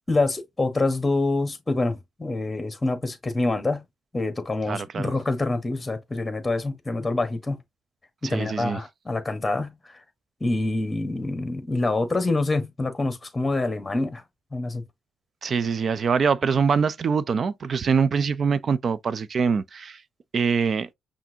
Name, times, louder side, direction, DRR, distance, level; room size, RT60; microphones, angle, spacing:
voice 1, 0.1-3.8 4.1-7.6 8.2-9.7 10.4-14.2 14.5-14.8, left 2 dB, 15° left, 1.2 m, -26 dB
voice 2, 4.7-5.1 8.2-8.8 15.4-20.0 20.3-20.9, right 6 dB, 50° right, 0.5 m, -24 dB
5.8 x 2.6 x 2.7 m
cardioid pair, 90°, 0 cm